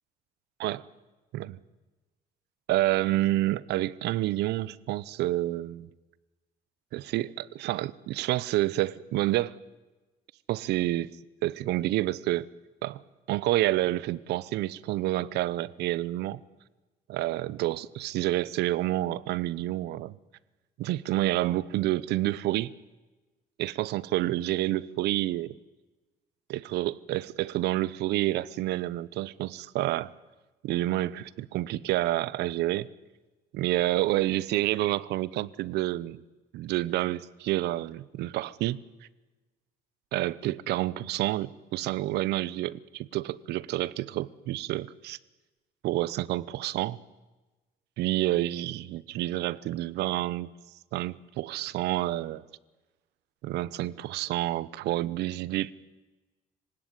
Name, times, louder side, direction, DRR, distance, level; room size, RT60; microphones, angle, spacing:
voice 1, 2.7-5.9 6.9-9.5 10.5-11.1 11.4-12.5 12.8-13.0 13.3-16.4 17.1-20.2 20.8-22.7 23.6-25.6 26.5-30.1 30.6-32.9 33.5-36.2 36.5-38.8 40.1-45.2 45.8-47.0 48.0-50.5 50.9-52.4 53.4-55.7, right 16 dB, 80° right, 0.9 m, -29 dB
26.5 x 17.0 x 9.9 m
cardioid pair, 110°, 17 cm